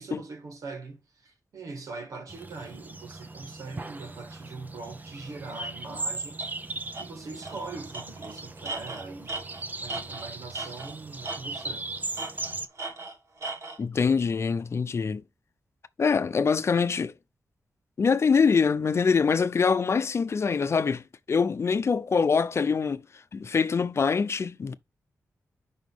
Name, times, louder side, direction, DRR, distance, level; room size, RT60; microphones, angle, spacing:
voice 1, 0.0-6.4 7.0-9.4 9.8-11.9, right 3 dB, 85° right, 1.9 m, -42 dB
sound 1, 2.3-12.7, right 2 dB, 30° right, 0.8 m, -38 dB
Tools, 6.4-6.5 6.9-7.1 7.4-7.6 7.9-11.0 11.2-11.8 12.2-13.8, right 2 dB, 60° right, 1.9 m, -37 dB
voice 2, 13.8-15.2 16.0-17.1 18.0-21.0 21.3-23.0 23.3-24.7, left 5 dB, 55° left, 0.6 m, -24 dB
6.1 x 5.4 x 3.5 m
wide cardioid pair, 90°, 6 cm